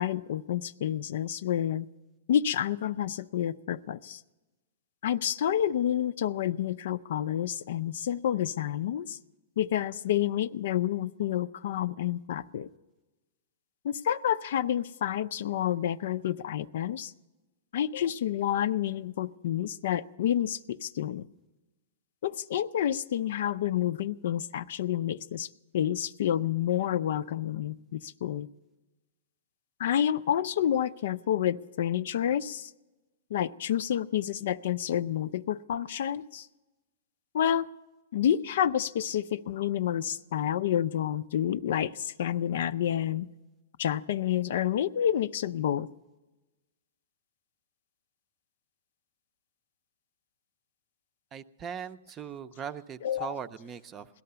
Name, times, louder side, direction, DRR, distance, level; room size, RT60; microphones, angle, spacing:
voice 1, 0.0-1.9 2.3-4.2 5.0-9.2 9.6-12.7 13.8-17.1 17.7-21.3 22.2-25.5 25.7-28.5 29.8-32.7 33.3-36.5 37.3-37.7 38.1-43.3 43.8-45.9 53.0-53.4, left 10 dB, 65° left, 15 dB, 0.4 m, -29 dB
voice 2, 51.3-54.1, right 7 dB, 25° right, 11 dB, 0.5 m, -40 dB
17.5 x 12.0 x 6.8 m, 1.1 s
hypercardioid pair, 140°, 0 cm